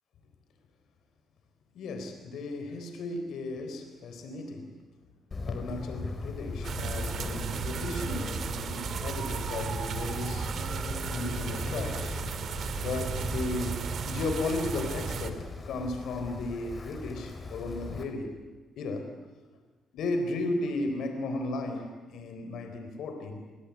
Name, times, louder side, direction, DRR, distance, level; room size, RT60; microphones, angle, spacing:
voice 1, 1.7-4.7 5.5-10.5 11.1-12.1 12.8-18.3 18.8-19.1 19.9-23.4, left 2 dB, 75° left, 7 dB, 4.1 m, -35 dB
sound 1, 1.8-2.1 2.7-2.8 6.5-9.8 10.4-13.4, left 4 dB, 55° left, 7.7 m, -47 dB
Wind, 5.3-18.0, left 3 dB, 35° left, 4.9 m, -39 dB
sound 2, 6.6-15.3, right 7 dB, 60° right, 2.5 m, -34 dB
28.5 x 22.5 x 8.6 m, 1.3 s
cardioid pair, 90°, 0 cm